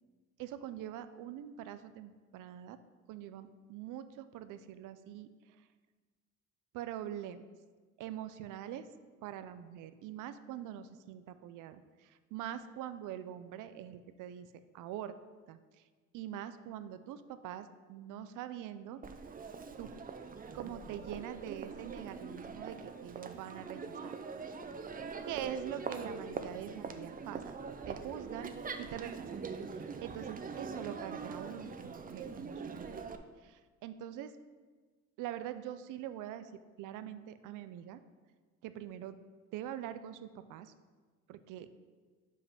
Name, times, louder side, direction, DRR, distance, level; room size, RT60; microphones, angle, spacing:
voice 1, 0.4-2.8 3.1-5.7 6.7-7.5 8.0-8.9 9.2-14.5 14.7-15.2 15.5-15.8 16.1-19.0 19.8-19.9 20.5-24.1 25.3-27.5 27.9-29.4 29.7-33.0 33.4-34.3 35.2-36.5 36.8-38.0 38.6-39.2 39.5-40.7 41.3-41.7, right 11 dB, 90° right, 12 dB, 0.5 m, -44 dB
Crowd, 19.0-33.2, right 5 dB, 30° right, 0.5 m, -43 dB
5.7 x 5.1 x 5.3 m, 1.4 s
cardioid pair, 90°, 30 cm